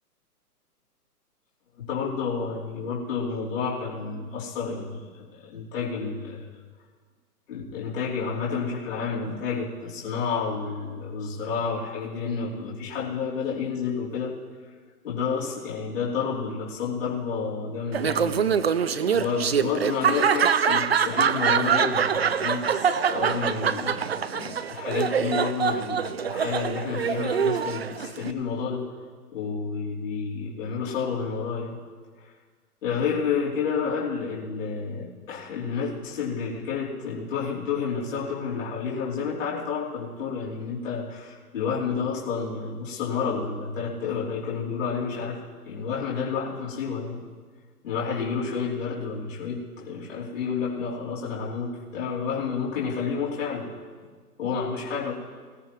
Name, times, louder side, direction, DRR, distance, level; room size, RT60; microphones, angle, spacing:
voice 1, 1.8-6.5 7.5-14.4 15.0-28.9 29.3-31.8 32.2-32.3 32.8-47.2 47.8-53.7 54.4-55.1, left 5 dB, 50° left, -7 dB, 3.3 m, -30 dB
Laughter, 17.9-28.3, right 7 dB, 45° right, 0.4 m, -24 dB
20.0 x 13.5 x 3.1 m, 1.5 s
hypercardioid pair, 155°, 47 cm